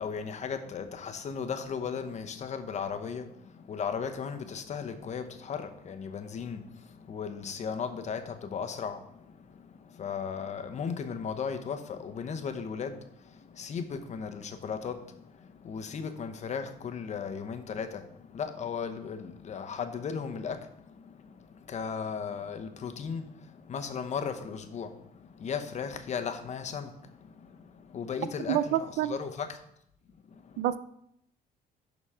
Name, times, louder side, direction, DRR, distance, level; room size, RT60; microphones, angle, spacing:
voice 1, 0.0-29.6 30.3-30.6, left 6 dB, 45° left, 0.9 m, -36 dB
voice 2, 28.5-29.1 30.6-30.8, right 12 dB, 85° right, 0.5 m, -27 dB
11.0 x 4.0 x 4.9 m
cardioid pair, 110°, 17 cm